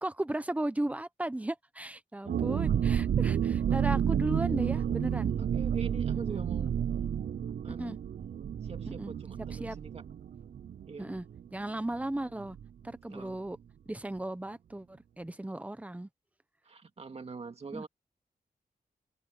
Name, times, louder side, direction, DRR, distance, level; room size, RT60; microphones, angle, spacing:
voice 1, 0.0-5.3 6.3-6.4 7.8-8.0 8.9-9.1 9.5-9.8 11.0-12.6 12.8-13.6 13.9-16.1 17.7-17.9, right 1 dB, 10° right, 0.9 m, -36 dB
sound 1, 2.3-11.7 11.9-12.0 12.4-12.7, right 8 dB, 75° right, 0.6 m, -30 dB
voice 2, 5.4-6.9 7.6-8.0 8.6-10.0 10.9-11.1 13.1-13.4 16.6-17.9, right 4 dB, 40° right, 2.1 m, -43 dB
wide cardioid pair, 170°, 15 cm